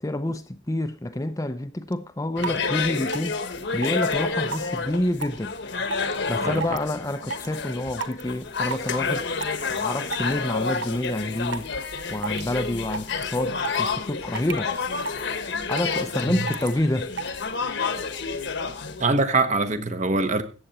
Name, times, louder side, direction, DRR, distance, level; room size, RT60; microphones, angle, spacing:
voice 1, 0.0-3.4 3.7-5.6 6.3-9.3 9.7-11.7 12.1-14.7 15.7-17.1, left 1 dB, 15° left, 0.6 m, -28 dB
sound 1, 1.9-2.0 2.4-2.6 3.1-3.3 3.8-4.1 4.5-4.8 5.2-5.4 5.9-6.1 6.6-6.9 7.3-7.5 8.0-8.2 8.7-8.9 9.4-9.8 10.1-10.3 10.7-11.1 11.5-11.7 12.2-12.6 12.9-13.2 13.6-13.9 14.4-14.6 15.1-15.2 15.5-16.0 16.5-16.7 17.2-17.3, right 5 dB, 65° right, 1.0 m, -31 dB
sound 2, 2.4-19.1, left 4 dB, 60° left, 1.2 m, -29 dB
voice 2, 19.0-20.4, right 3 dB, 40° right, 1.1 m, -23 dB
14.5 x 8.9 x 4.2 m
head